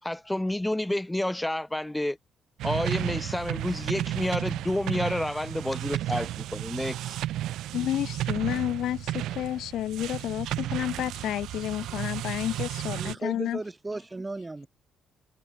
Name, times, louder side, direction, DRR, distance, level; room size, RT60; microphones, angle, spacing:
voice 1, 0.0-2.2 2.6-7.2, left 1 dB, 10° left, 3.7 m, -29 dB
sound 1, 2.6-13.2, right 14 dB, 85° right, 3.7 m, -33 dB
voice 2, 7.7-13.6, left 12 dB, 80° left, 0.8 m, -30 dB
voice 3, 12.9-14.7, right 2 dB, 20° right, 4.9 m, -35 dB
cardioid pair, 90°, 0 cm